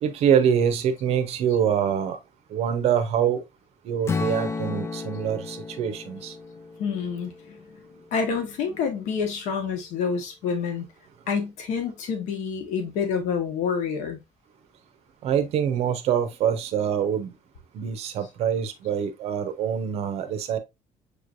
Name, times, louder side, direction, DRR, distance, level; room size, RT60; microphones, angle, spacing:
voice 1, 0.0-2.2 2.5-3.4 3.8-6.3 15.2-17.3 17.7-20.6, right 8 dB, 60° right, 0.7 m, -25 dB
Strum, 4.1-8.2, left 4 dB, 20° left, 0.3 m, -33 dB
voice 2, 6.8-7.6 8.1-10.9 11.3-14.2, left 6 dB, 90° left, 1.2 m, -28 dB
6.6 x 3.2 x 2.5 m
cardioid pair, 175°, 12 cm